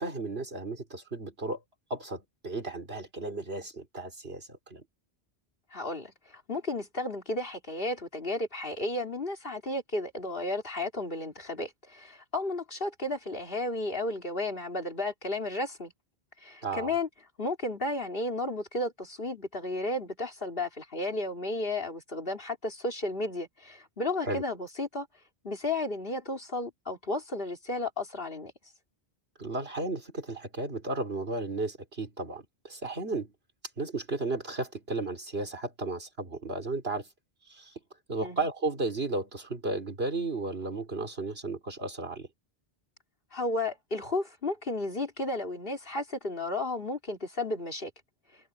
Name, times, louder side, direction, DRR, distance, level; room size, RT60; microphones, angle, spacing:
voice 1, 0.0-1.6 1.9-4.8 16.6-16.9 24.2-24.4 29.4-33.3 33.8-37.1 37.5-37.7 38.1-42.3, right 2 dB, 75° right, 4.0 m, -34 dB
voice 2, 5.7-15.9 16.4-17.1 17.4-25.1 25.4-28.5 38.2-38.4 43.3-47.9, left 2 dB, 60° left, 3.5 m, -33 dB
omnidirectional pair, 1.1 m